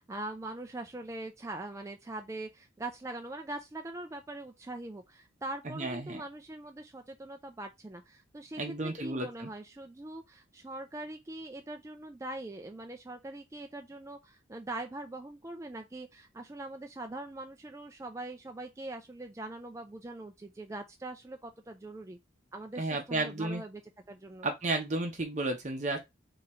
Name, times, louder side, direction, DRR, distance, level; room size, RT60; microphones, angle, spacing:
voice 1, 0.0-22.2 22.5-23.8 24.1-24.5, right 2 dB, 15° right, 0.4 m, -42 dB
voice 2, 5.6-6.2 8.6-9.5 22.8-23.6 24.4-26.0, right 2 dB, 40° right, 0.8 m, -33 dB
3.9 x 2.9 x 4.2 m
head